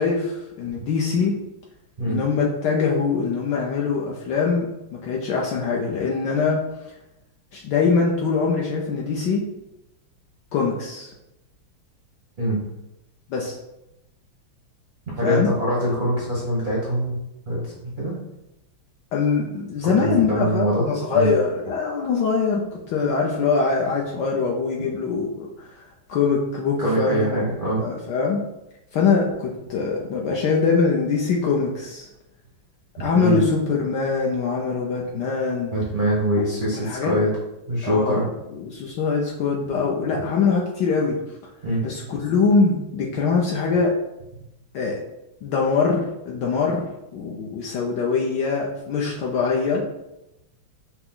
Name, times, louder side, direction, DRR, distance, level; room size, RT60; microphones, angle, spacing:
voice 1, 0.0-1.4 2.1-6.6 7.5-9.4 10.5-11.1 13.3-13.6 15.2-15.5 19.1-25.8 26.1-28.4 28.9-32.1 33.0-35.7 36.4-36.5 36.7-37.1 37.8-41.2 41.8-43.9 44.7-45.0 45.4-49.8, left 5 dB, 70° left, -2 dB, 1.0 m, -23 dB
voice 2, 15.2-17.7 18.0-18.1 20.0-21.3 26.8-27.8 33.0-33.4 35.7-37.3 37.7-38.3 41.6-41.8, right 1 dB, 55° right, -7 dB, 0.5 m, -23 dB
5.7 x 2.1 x 3.7 m, 0.90 s
omnidirectional pair, 2.4 m